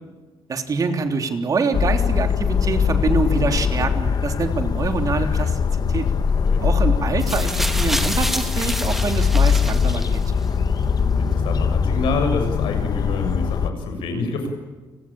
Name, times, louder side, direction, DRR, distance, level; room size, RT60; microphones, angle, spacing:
voice 1, 0.5-6.1 6.6-10.2, right 4 dB, 45° right, 6 dB, 3.4 m, -25 dB
sound 1, 1.7-13.7, left 6 dB, 50° left, 1.4 m, -21 dB
sound 2, 7.2-10.4 11.3-11.4, equal, 5° right, 2.5 m, -28 dB
voice 2, 10.7-14.5, left 3 dB, 90° left, 5 dB, 7.0 m, -27 dB
29.5 x 20.5 x 8.9 m, 1.2 s
cardioid pair, 95°, 8 cm